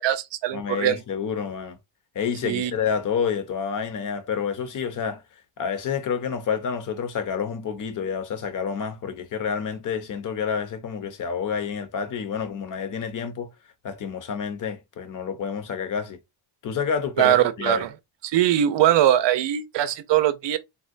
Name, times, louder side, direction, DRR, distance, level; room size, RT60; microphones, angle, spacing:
voice 1, 0.0-1.0 2.4-2.7 17.2-17.9 18.2-20.6, right 11 dB, 65° right, 0.5 m, -21 dB
voice 2, 0.5-1.8 2.1-5.2 5.6-13.5 13.8-16.2 16.6-17.8, left 7 dB, 45° left, 0.6 m, -29 dB
3.7 x 2.1 x 2.4 m
wide cardioid pair, 165°, 46 cm